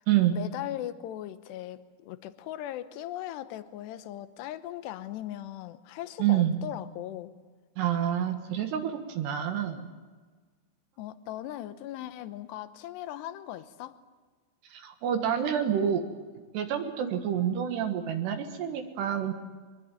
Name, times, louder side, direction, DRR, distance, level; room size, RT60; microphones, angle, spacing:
voice 1, 0.3-7.4 11.0-14.0, left 13 dB, 75° left, 12 dB, 3.0 m, -38 dB
voice 2, 6.2-6.5 7.8-9.9 14.7-16.0 16.5-19.3, right 10 dB, 70° right, 6 dB, 3.5 m, -28 dB
23.5 x 21.5 x 9.1 m, 1.4 s
omnidirectional pair, 5.2 m